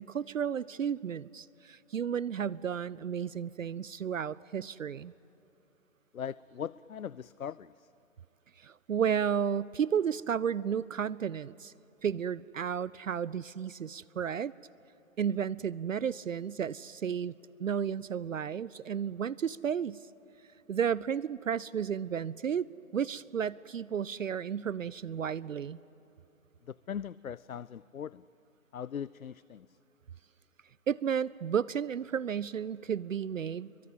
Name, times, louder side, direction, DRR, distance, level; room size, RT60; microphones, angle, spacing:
voice 1, 0.0-5.1 8.6-11.7 12.0-14.5 15.2-17.3 17.6-20.0 20.7-22.7 22.9-25.8 30.9-33.7, right 8 dB, 70° right, 21 dB, 0.6 m, -32 dB
voice 2, 6.1-7.7 26.7-28.2 28.7-29.7, left 8 dB, 80° left, 21 dB, 0.5 m, -40 dB
27.5 x 23.0 x 9.0 m, 2.9 s
figure-of-eight pair, 135°, 41 cm